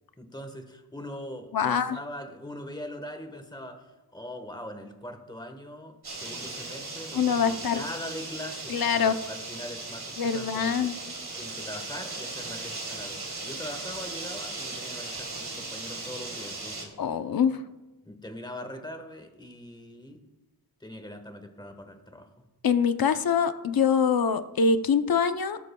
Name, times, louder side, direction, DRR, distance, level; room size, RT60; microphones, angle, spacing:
voice 1, 0.2-10.9 11.4-16.9 18.0-20.2 20.8-22.3, left 1 dB, 10° left, 6 dB, 1.3 m, -41 dB
voice 2, 1.5-2.0 7.1-7.8 8.7-9.2 10.2-10.9 17.0-17.6 22.6-25.6, left 6 dB, 65° left, 10 dB, 0.7 m, -24 dB
sound 1, 6.0-16.8, right 3 dB, 75° right, 3.1 m, -37 dB
18.5 x 12.5 x 2.3 m, 1.1 s
wide cardioid pair, 105°, 38 cm